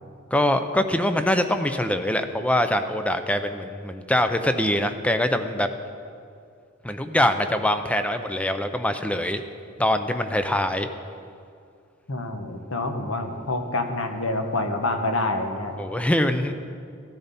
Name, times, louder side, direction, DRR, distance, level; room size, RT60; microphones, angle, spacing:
voice 1, 0.3-5.7 6.8-9.4 9.8-10.9 15.8-16.5, left 1 dB, 5° left, 8 dB, 0.5 m, -23 dB
voice 2, 12.1-15.8, left 2 dB, 70° left, 5 dB, 1.2 m, -27 dB
16.0 x 10.0 x 4.2 m, 2.4 s
head